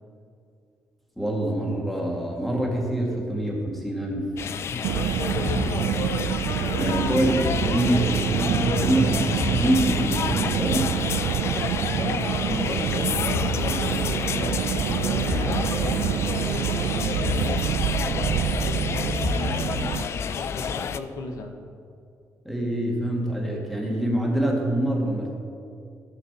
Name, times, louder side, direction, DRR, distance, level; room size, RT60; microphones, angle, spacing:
voice 1, 1.2-4.3 6.8-10.9 22.5-25.3, right 1 dB, ahead, -1 dB, 1.8 m, -25 dB
sound 1, 4.4-21.0, left 7 dB, 45° left, 0.4 m, -29 dB
voice 2, 4.7-5.1 5.3-6.1 6.6-7.0 11.9-17.7 17.9-21.5, left 3 dB, 65° left, 4 dB, 0.9 m, -36 dB
Car, 4.8-20.0, right 10 dB, 85° right, 0.4 m, -27 dB
14.5 x 5.8 x 4.7 m, 2.4 s
cardioid pair, 135°, 6 cm